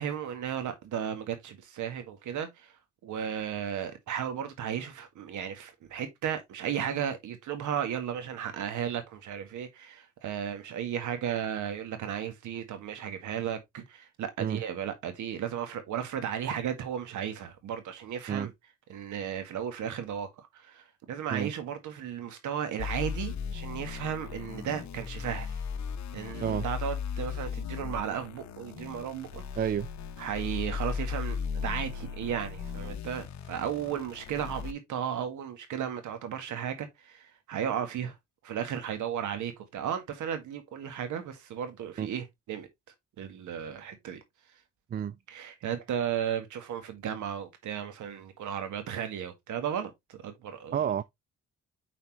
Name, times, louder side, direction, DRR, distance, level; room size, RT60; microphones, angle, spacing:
voice 1, 0.0-2.7 3.0-18.5 18.9-25.6 26.1-29.4 30.2-38.2 38.4-42.7 43.2-44.2 45.3-50.8, right 9 dB, 80° right, 1.8 m, -35 dB
sound 1, 22.8-34.7, left 6 dB, 65° left, 1.0 m, -37 dB
voice 2, 29.6-29.9 42.0-42.1 44.9-45.1 50.7-51.0, right 9 dB, 30° right, 0.4 m, -29 dB
7.6 x 4.3 x 3.0 m
cardioid pair, 90°, 30 cm